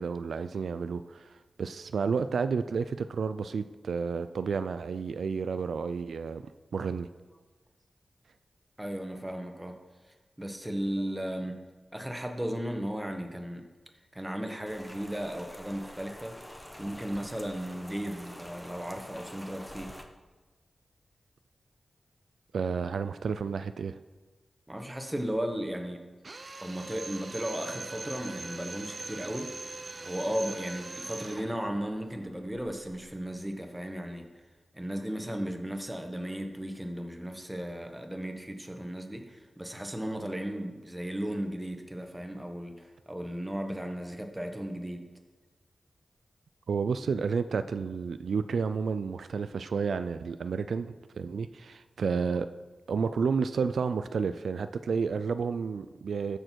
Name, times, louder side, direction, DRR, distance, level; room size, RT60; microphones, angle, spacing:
voice 1, 0.0-6.4 6.7-7.1 22.5-24.0 46.7-52.5 52.9-56.4, right 5 dB, 85° right, 0.3 m, -31 dB
voice 2, 8.8-9.8 10.4-11.6 11.9-13.7 14.1-16.4 16.8-20.0 24.7-26.0 26.6-29.6 30.0-34.3 34.7-45.1, equal, 10° right, 1.4 m, -35 dB
Rain, 14.7-20.0, equal, 10° left, 1.1 m, -47 dB
Drill, 26.2-31.5, right 3 dB, 45° right, 0.7 m, -41 dB
sound 1, 27.5-33.5, left 1 dB, 30° left, 2.1 m, -55 dB
14.0 x 6.5 x 4.6 m
cardioid pair, 70°, 0 cm